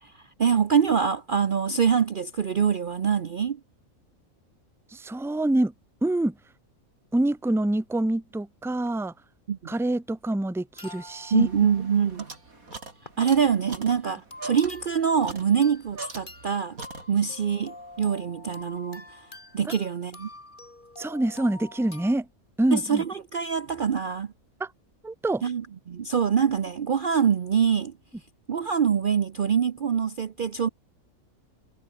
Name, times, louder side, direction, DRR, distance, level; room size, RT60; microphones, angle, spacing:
voice 1, 0.4-3.6 9.5-9.6 11.3-12.3 13.2-16.8 17.1-19.3 19.5-20.3 22.7-24.3 25.4-27.9 28.5-30.7, right 7 dB, 45° right, 0.8 m, -24 dB
voice 2, 4.9-5.7 6.0-6.4 7.1-9.1 9.7-11.5 19.6-19.7 21.0-22.3 22.6-23.0 24.6-24.7 25.0-25.4, right 1 dB, ahead, 0.8 m, -26 dB
sound 1, 10.7-13.1 13.6-13.8 14.3-16.0 16.3-22.1, left 2 dB, 35° left, 4.0 m, -47 dB
sound 2, 11.3-16.5 16.8-17.4, right 3 dB, 85° right, 4.6 m, -42 dB
omnidirectional pair, 1.5 m